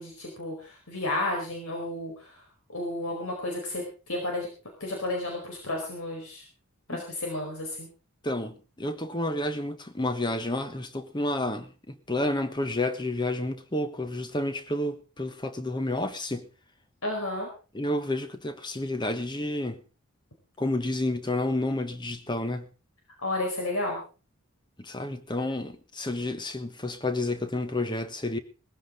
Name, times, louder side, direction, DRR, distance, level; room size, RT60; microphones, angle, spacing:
voice 1, 0.0-2.3 2.7-4.5 4.8-6.4 6.9-7.9 17.0-17.5 23.2-24.0, left 2 dB, 70° left, 4.8 m, -32 dB
voice 2, 8.2-16.4 17.7-19.8 20.6-22.7 24.8-28.4, left 1 dB, 20° left, 1.3 m, -30 dB
19.0 x 15.5 x 3.8 m
head